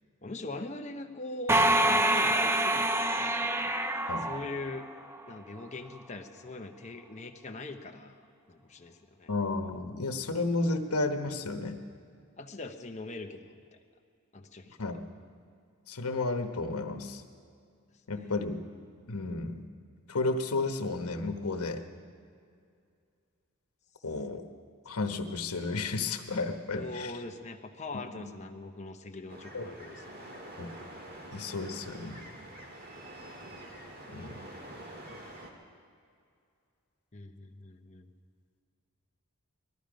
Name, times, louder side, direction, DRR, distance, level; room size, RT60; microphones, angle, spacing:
voice 1, 0.2-3.8 4.1-4.9 5.3-8.2 8.5-9.3 12.4-13.5 14.3-15.0 26.7-30.3 37.1-38.1, left 2 dB, 30° left, 4 dB, 0.9 m, -42 dB
sound 1, 1.5-5.2, right 1 dB, 10° right, 0.4 m, -26 dB
voice 2, 9.3-11.8 14.8-15.0 15.9-17.2 18.1-18.6 19.1-19.6 20.1-21.8 24.0-24.4 24.9-27.1 29.5-29.7 30.6-30.8 31.3-32.2 34.1-34.4, left 3 dB, 90° left, 5 dB, 1.1 m, -32 dB
sound 2, 29.3-35.5, right 1 dB, 45° right, 2.0 m, -46 dB
19.0 x 14.0 x 5.1 m, 2.3 s
head